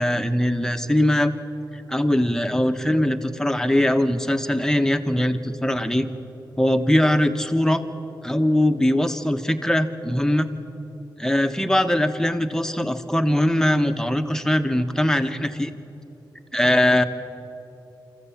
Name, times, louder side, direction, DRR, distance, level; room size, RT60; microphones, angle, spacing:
voice 1, 0.0-1.3 1.9-6.1 6.6-7.8 8.2-10.5 11.2-15.7 16.5-17.0, left 1 dB, 5° left, 7 dB, 1.4 m, -21 dB
24.5 x 14.5 x 8.7 m, 2.9 s
cardioid pair, 55°, 8 cm